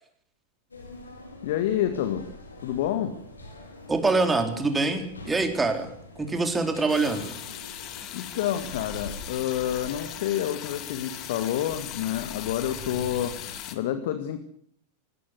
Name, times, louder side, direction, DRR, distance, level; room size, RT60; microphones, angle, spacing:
sound 1, 0.7-13.6, left 2 dB, 75° left, 5.5 m, -44 dB
voice 1, 1.4-2.3 2.6-3.2 8.1-13.3 13.7-14.4, left 11 dB, 55° left, 9 dB, 1.9 m, -28 dB
voice 2, 3.9-5.9 6.2-7.4, right 3 dB, 10° right, 6 dB, 3.8 m, -25 dB
sound 2, 6.9-13.8, left 11 dB, 40° left, 2.8 m, -39 dB
21.5 x 17.0 x 8.0 m, 0.64 s
figure-of-eight pair, 90°, 0 cm